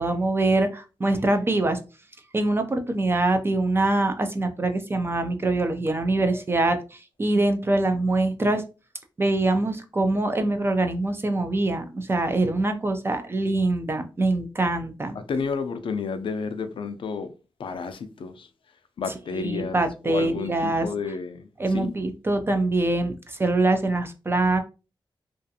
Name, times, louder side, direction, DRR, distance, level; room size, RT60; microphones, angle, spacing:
voice 1, 0.0-1.8 2.3-8.6 9.2-15.2 19.3-20.9 21.6-24.6, right 2 dB, 25° right, 0.3 m, -24 dB
voice 2, 15.3-17.3 17.6-18.5 19.0-21.9, left 5 dB, 70° left, 0.4 m, -31 dB
2.5 x 2.3 x 2.6 m
wide cardioid pair, 140°, 9 cm